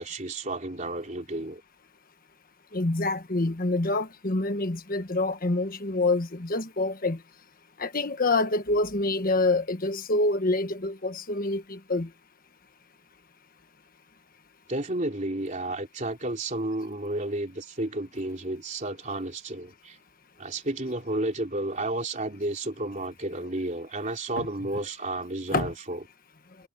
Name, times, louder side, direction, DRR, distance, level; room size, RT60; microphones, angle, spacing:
voice 1, 0.0-1.6 14.7-20.0 20.4-26.0, right 2 dB, 40° right, 3.4 m, -32 dB
voice 2, 2.7-7.2 7.8-12.1 25.5-25.7, left 2 dB, 45° left, 1.4 m, -26 dB
head